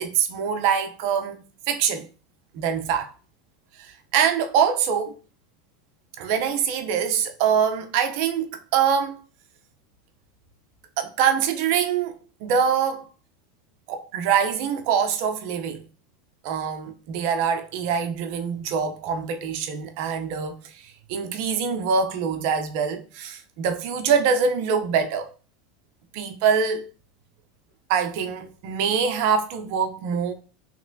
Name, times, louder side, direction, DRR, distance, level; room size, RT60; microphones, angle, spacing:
voice 1, 0.0-2.1 2.5-3.1 3.8-5.2 6.2-9.2 11.0-13.1 13.9-15.8 16.4-25.3 26.1-26.9 27.9-30.3, right 7 dB, 65° right, 0.5 m, -24 dB
3.0 x 2.9 x 2.6 m
hypercardioid pair, 100°, 0 cm